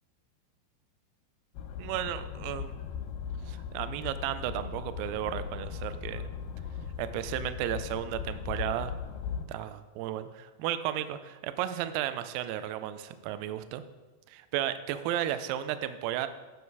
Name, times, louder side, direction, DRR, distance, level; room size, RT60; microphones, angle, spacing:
sound 1, 1.5-9.4, left 7 dB, 90° left, 2.6 m, -38 dB
voice 1, 1.8-2.7 3.5-6.3 7.0-8.9 9.5-13.8 14.3-16.3, right 11 dB, 80° right, 11 dB, 2.2 m, -34 dB
10.5 x 6.3 x 4.7 m, 1.2 s
omnidirectional pair, 4.5 m